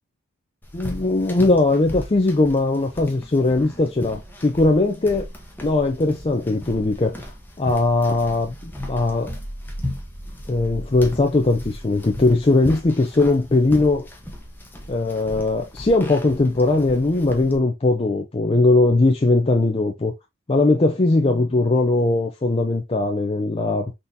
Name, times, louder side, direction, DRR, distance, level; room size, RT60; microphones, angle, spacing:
sound 1, 0.6-17.6, equal, 10° left, 0.8 m, -36 dB
voice 1, 0.7-5.3 5.6-7.2 7.6-9.4 10.5-14.1 14.9-20.1 20.5-23.9, left 2 dB, 25° left, 0.4 m, -20 dB
4.0 x 3.7 x 2.6 m
head